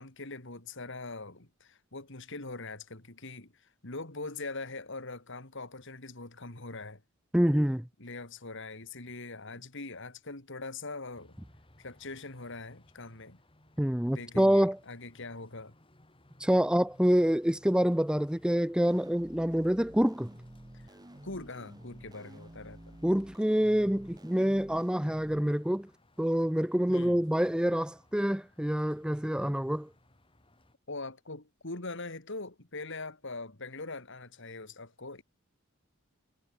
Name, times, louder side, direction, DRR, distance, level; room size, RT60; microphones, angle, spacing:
voice 1, 0.0-7.0 8.0-11.4 11.8-13.4 14.1-15.8 20.7-20.9 21.2-23.0 26.9-27.2 30.9-35.2, left 3 dB, 65° left, 3.7 m, -42 dB
voice 2, 7.3-7.9 13.8-14.8 16.4-20.3 23.0-25.9 26.2-29.9, equal, 5° right, 0.8 m, -26 dB
sound 1, 11.1-30.8, left 1 dB, 25° left, 4.3 m, -62 dB
sound 2, 18.8-25.4, right 1 dB, 20° right, 1.5 m, -51 dB
head